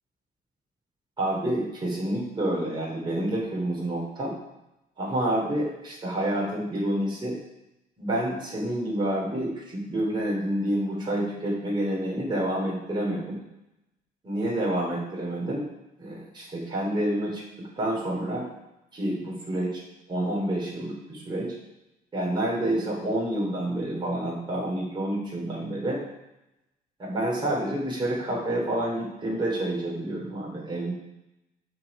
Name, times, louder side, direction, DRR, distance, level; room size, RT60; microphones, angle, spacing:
voice 1, 1.2-4.3 5.0-7.4 8.0-13.4 14.2-15.7 16.0-18.4 18.9-19.8 20.1-21.5 22.1-26.0 27.0-30.9, right 1 dB, 25° right, -4 dB, 3.4 m, -28 dB
14.5 x 4.8 x 5.0 m, 0.92 s
cardioid pair, 110°, 17 cm